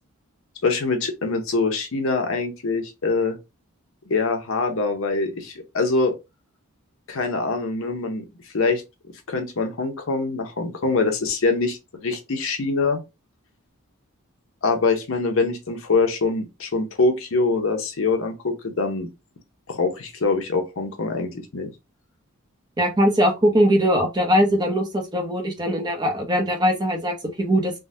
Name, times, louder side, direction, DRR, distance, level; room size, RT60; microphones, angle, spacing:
voice 1, 0.6-3.4 4.1-6.1 7.1-8.2 8.5-8.8 9.3-13.0 14.6-19.1 19.7-21.7, left 3 dB, 65° left, 0.7 m, -24 dB
voice 2, 22.8-27.7, equal, 20° right, 0.6 m, -21 dB
3.6 x 2.1 x 2.6 m
head